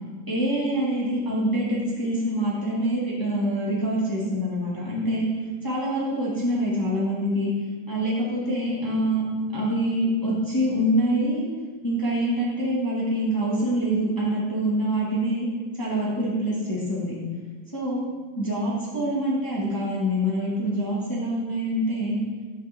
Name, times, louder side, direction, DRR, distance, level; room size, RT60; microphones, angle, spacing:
voice 1, 0.3-5.2 5.6-7.5 7.9-9.2 9.5-11.4 11.8-15.5 15.8-17.1 17.7-18.0 18.3-22.2, right 1 dB, 20° left, -6 dB, 0.6 m, -25 dB
11.0 x 6.7 x 3.5 m, 1.4 s
omnidirectional pair, 3.8 m